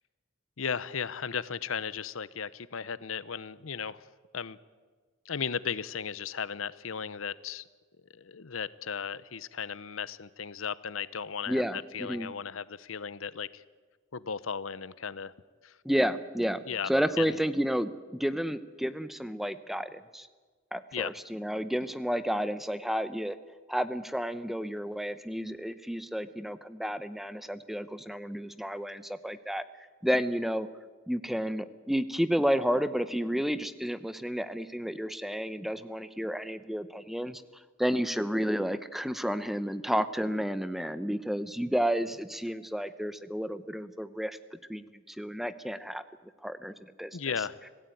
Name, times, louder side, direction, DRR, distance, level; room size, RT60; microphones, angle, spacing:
voice 1, 0.6-4.0 4.3-4.6 5.3-7.6 8.1-13.6 14.1-15.3 15.6-15.7 16.6-16.9 17.2-17.4 20.9-21.1 47.1-47.6, left 6 dB, 85° left, 18 dB, 0.8 m, -35 dB
voice 2, 11.5-12.3 15.8-20.3 20.7-23.4 23.7-29.6 30.0-30.7 31.1-37.4 37.8-44.4 44.7-46.0 46.4-47.1, equal, ahead, 13 dB, 0.7 m, -31 dB
26.0 x 17.0 x 9.2 m, 1.5 s
head